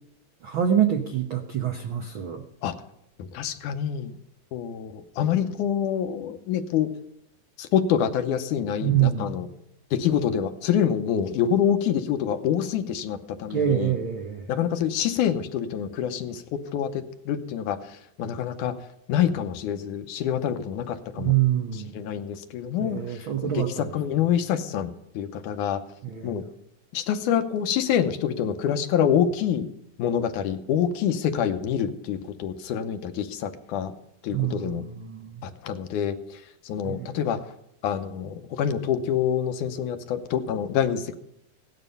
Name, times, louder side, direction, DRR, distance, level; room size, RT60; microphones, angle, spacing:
voice 1, 0.4-2.5 8.8-9.4 13.5-14.5 21.2-21.9 22.8-23.9 26.0-26.4 34.3-35.5 36.8-37.2, right 10 dB, 80° right, 4 dB, 1.1 m, -26 dB
voice 2, 3.2-4.2 4.5-6.9 7.6-9.5 9.9-13.9 14.5-18.8 19.1-21.4 21.9-25.8 26.2-26.5 26.9-29.7 30.0-33.9 34.2-34.8 35.4-37.4 37.8-41.2, left 9 dB, 75° left, 8 dB, 2.2 m, -26 dB
17.0 x 11.0 x 5.4 m, 0.78 s
omnidirectional pair, 3.9 m